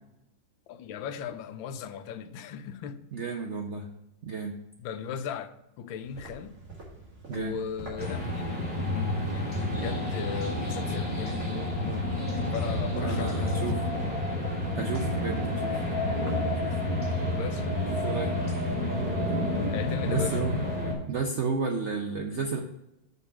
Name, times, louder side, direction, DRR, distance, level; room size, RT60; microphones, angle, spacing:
voice 1, 0.7-3.0 4.8-6.6 7.3-13.7 17.4-17.7 19.7-20.4, left 7 dB, 85° left, 1.4 m, -37 dB
voice 2, 3.1-3.9 4.2-4.6 7.3-7.6 12.9-13.8 14.8-15.8 16.6-16.8 17.9-18.3 20.1-20.5 21.1-22.6, right 4 dB, 70° right, 0.6 m, -32 dB
sound 1, 6.0-20.8, right 2 dB, 45° right, 2.4 m, -47 dB
sound 2, 8.0-20.9, left 1 dB, 5° right, 2.3 m, -29 dB
6.1 x 5.4 x 5.8 m
omnidirectional pair, 2.1 m